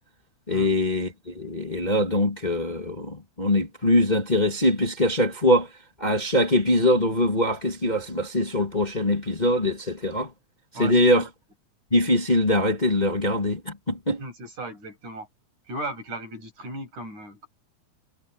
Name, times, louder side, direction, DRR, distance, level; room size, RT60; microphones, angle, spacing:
voice 1, 0.5-5.7 6.0-10.3 10.8-11.2 11.9-14.2, left 1 dB, 15° left, 2.0 m, -23 dB
voice 2, 10.7-11.3 14.2-15.3 15.7-17.5, right 1 dB, 75° right, 9.6 m, -36 dB
omnidirectional pair, 3.4 m